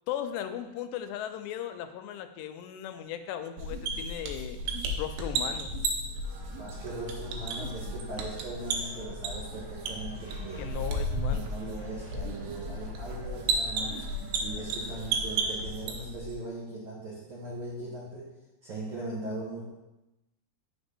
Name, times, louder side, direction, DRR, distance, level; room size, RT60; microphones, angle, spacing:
voice 1, 0.1-4.6 5.0-5.7 10.6-11.5, left 10 dB, 90° left, 8 dB, 2.7 m, -37 dB
sound 1, 3.6-16.3, right 2 dB, 90° right, 2.8 m, -33 dB
sound 2, 6.2-15.5, right 2 dB, 15° right, 1.2 m, -51 dB
voice 2, 6.6-10.7 11.3-14.0 14.4-18.3 18.6-19.6, right 2 dB, 75° right, -7 dB, 1.8 m, -39 dB
6.3 x 3.5 x 5.4 m, 0.99 s
omnidirectional pair, 4.8 m